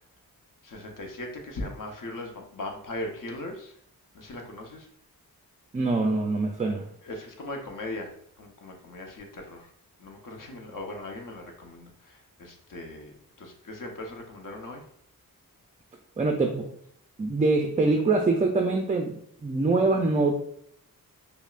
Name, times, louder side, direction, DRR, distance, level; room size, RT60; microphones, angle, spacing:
voice 1, 0.6-3.7 4.1-4.9 7.0-9.7 10.0-14.8, left 2 dB, 55° left, 1 dB, 1.0 m, -39 dB
voice 2, 5.7-6.9 16.2-16.7 17.2-20.3, right 3 dB, 20° right, 3 dB, 0.4 m, -24 dB
5.2 x 2.2 x 2.5 m, 0.69 s
cardioid pair, 70°, 38 cm